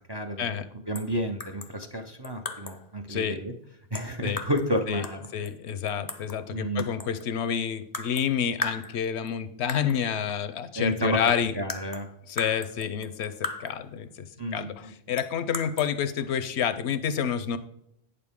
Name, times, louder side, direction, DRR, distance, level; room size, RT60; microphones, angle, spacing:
voice 1, 0.1-3.5 3.9-5.3 6.5-6.9 10.8-11.2 11.5-12.1 14.4-14.9, equal, 30° right, 6 dB, 0.5 m, -31 dB
sound 1, 0.9-1.1 1.4-2.9 3.9-4.7 5.0-6.4 6.8-7.3 7.9-8.3 8.6-9.3 9.7-10.0 10.9-11.0 11.3-13.9 15.2-15.9, left 4 dB, 25° left, 0.4 m, -37 dB
voice 2, 5.3-11.5 12.3-13.3 13.6-14.3 14.5-17.6, left 8 dB, 75° left, 12 dB, 0.9 m, -29 dB
8.7 x 6.8 x 3.6 m, 0.74 s
omnidirectional pair, 1.1 m